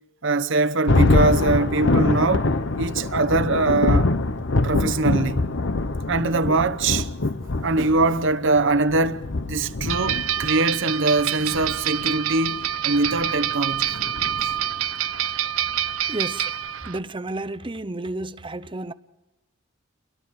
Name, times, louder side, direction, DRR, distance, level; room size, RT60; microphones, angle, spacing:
voice 1, 0.2-2.5 2.8-4.1 4.6-5.5 6.1-7.1 7.6-13.9, right 3 dB, 65° right, 1.1 m, -22 dB
Thunder, 0.9-14.8, left 2 dB, 60° left, 1.0 m, -24 dB
sound 1, 9.9-17.0, right 11 dB, 80° right, 0.6 m, -26 dB
voice 2, 16.1-16.5 16.9-18.9, right 2 dB, 25° right, 0.8 m, -31 dB
30.0 x 23.0 x 4.9 m
head